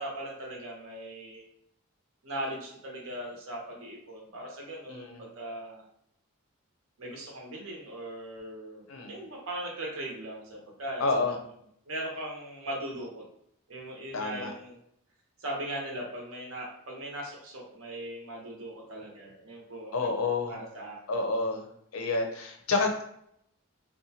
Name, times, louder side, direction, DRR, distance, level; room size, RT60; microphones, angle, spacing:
voice 1, 0.0-1.4 2.2-5.8 7.0-11.4 11.9-13.2 13.7-14.8 15.4-20.1 20.5-21.0, right 1 dB, 70° right, -1 dB, 0.8 m, -39 dB
voice 2, 4.9-5.3 8.9-9.2 11.0-11.4 14.1-14.5 19.9-20.6 21.1-21.6 21.9-23.0, left 3 dB, 75° left, 3 dB, 0.5 m, -29 dB
2.6 x 2.2 x 2.7 m, 0.72 s
head